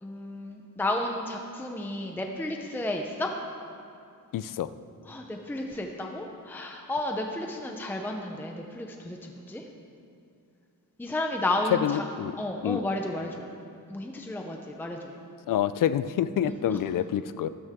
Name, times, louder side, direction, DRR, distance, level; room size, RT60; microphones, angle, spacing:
voice 1, 0.0-3.3 5.1-9.6 11.0-12.0 12.4-13.4 13.9-15.1 16.7-16.8, left 1 dB, 5° left, 2 dB, 0.7 m, -32 dB
voice 2, 4.3-4.7 11.7-12.4 12.6-12.8 15.5-17.5, left 10 dB, 70° left, 14 dB, 0.5 m, -27 dB
14.0 x 13.5 x 3.6 m, 2.5 s
wide cardioid pair, 165°, 34 cm